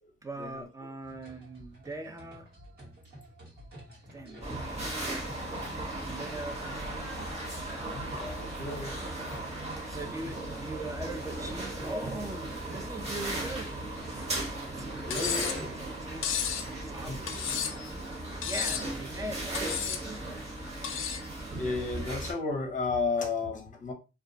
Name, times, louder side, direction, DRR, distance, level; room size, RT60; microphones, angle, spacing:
voice 1, 0.2-2.5 4.1-4.7 6.0-7.0 9.8-13.9 14.7-16.2 16.6-20.3, right 2 dB, 15° right, 0.4 m, -41 dB
sound 1, 1.0-15.9, equal, 55° right, 1.1 m, -49 dB
voice 2, 4.2-4.5 5.7-5.9 7.7-9.0 15.0-15.7 17.0-17.5 21.6-23.9, left 3 dB, 40° left, 0.7 m, -34 dB
sound 2, 4.4-22.3, right 1 dB, 30° right, 1.0 m, -37 dB
Cutlery silverware, 15.1-15.6 16.2-16.7 17.3-17.9 18.4-18.9 19.5-20.0 20.8-21.3, left 8 dB, 85° left, 0.4 m, -32 dB
2.2 x 2.1 x 3.7 m
wide cardioid pair, 170°, 21 cm